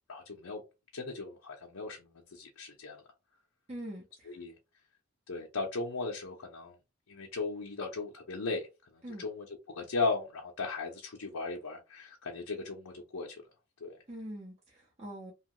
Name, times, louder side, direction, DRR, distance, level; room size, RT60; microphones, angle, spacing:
voice 1, 0.1-0.6 0.9-3.0 4.3-4.5 5.3-6.8 7.1-8.7 8.9-13.4 13.8-14.0, left 3 dB, 85° left, 0.6 m, -37 dB
voice 2, 3.7-4.4 9.0-9.3 14.1-15.3, right 1 dB, 30° right, 0.7 m, -43 dB
2.9 x 2.2 x 2.9 m
head